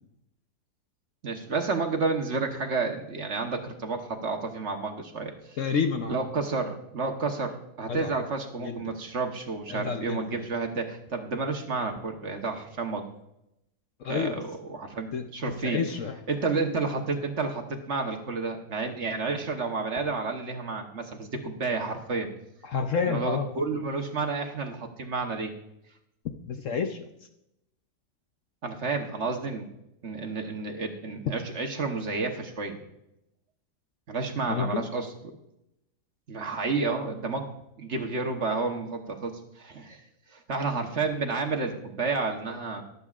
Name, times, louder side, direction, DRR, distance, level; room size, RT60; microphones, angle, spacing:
voice 1, 1.2-5.6 6.1-13.1 14.1-15.8 16.3-22.3 23.1-25.5 28.6-29.7 30.0-32.8 34.1-35.1 36.3-37.5 37.8-40.0 40.3-42.8, right 4 dB, 50° right, 4 dB, 1.2 m, -30 dB
voice 2, 5.6-6.1 7.9-8.1 8.6-8.9 9.7-10.4 14.0-14.4 15.1-15.3 15.6-16.2 22.6-23.5 26.5-27.1 34.5-34.8, left 6 dB, 60° left, 5 dB, 0.9 m, -29 dB
22.5 x 8.2 x 2.4 m, 0.84 s
omnidirectional pair, 1.7 m